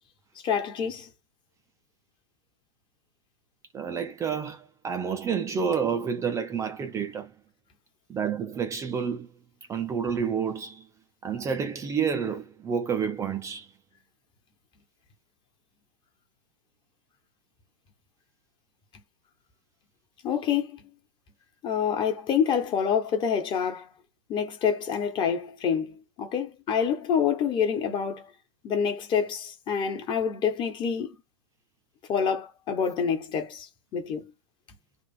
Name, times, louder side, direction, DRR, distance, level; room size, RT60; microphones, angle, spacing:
voice 1, 0.4-1.1 20.2-20.9 21.6-23.9 24.3-28.3 28.6-31.2 32.1-34.3, left 7 dB, 30° left, 1.3 m, -27 dB
voice 2, 3.7-7.3 8.1-9.3 9.7-10.9 11.2-13.7, right 6 dB, 15° right, 0.6 m, -29 dB
3.4 x 2.5 x 4.4 m
figure-of-eight pair, 100°, 17 cm